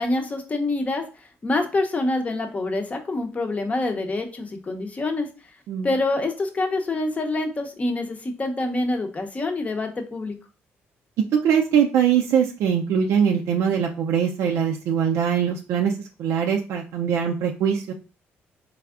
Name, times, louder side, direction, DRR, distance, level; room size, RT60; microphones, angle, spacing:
voice 1, 0.0-5.3 5.8-10.4, left 2 dB, 30° left, 5 dB, 0.7 m, -26 dB
voice 2, 11.4-15.9 16.2-17.9, right 8 dB, 75° right, 2 dB, 0.4 m, -22 dB
3.5 x 3.3 x 2.4 m, 0.34 s
cardioid pair, 90°, 5 cm